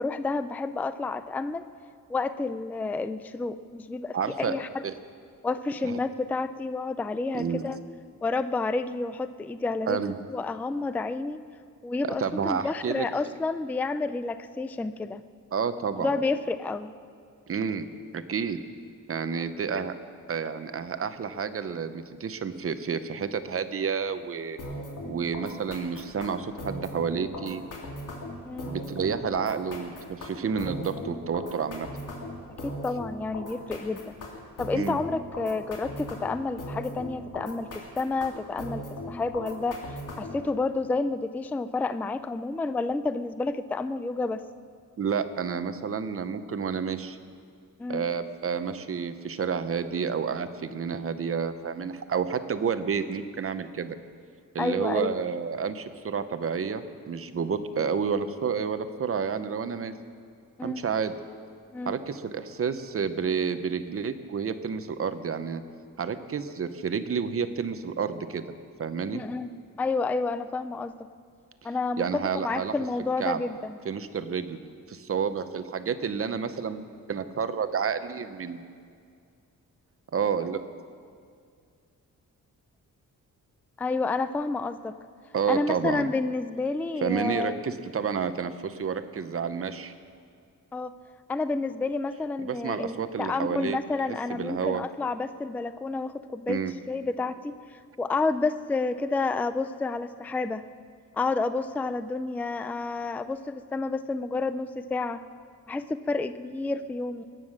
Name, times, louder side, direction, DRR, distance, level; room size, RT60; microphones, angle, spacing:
voice 1, 0.0-1.6 2.1-4.8 5.4-7.8 8.2-10.0 10.3-11.4 11.8-15.2 16.0-16.9 19.3-19.4 28.5-28.7 32.6-34.2 34.6-37.7 37.9-44.4 47.8-48.1 54.6-55.1 60.6-60.8 61.7-62.0 69.1-69.5 69.8-71.1 71.6-72.1 72.3-73.8 83.8-84.9 85.5-87.6 90.7-90.9 91.3-96.6 96.9-100.6 101.1-105.2 105.7-107.2, left 3 dB, 5° left, 12 dB, 0.3 m, -30 dB
voice 2, 4.1-4.5 4.8-4.9 5.8-6.0 7.3-7.7 9.9-10.2 12.0-13.1 15.5-16.1 17.5-17.9 18.1-18.6 19.1-19.9 20.3-24.6 25.0-27.6 28.7-31.9 34.7-35.0 45.0-47.2 47.9-54.0 54.5-59.9 60.6-61.1 61.8-65.6 66.0-68.5 68.8-69.2 72.0-72.7 73.2-73.4 73.8-74.6 74.9-78.6 80.1-80.6 85.3-86.1 87.0-89.9 92.4-93.8 94.1-94.8 96.5-96.7, right 6 dB, 45° right, 11 dB, 0.8 m, -30 dB
sound 1, 24.6-40.4, left 1 dB, 75° left, 3.0 m, -38 dB
22.0 x 9.4 x 6.4 m, 2.2 s
wide cardioid pair, 160°, 32 cm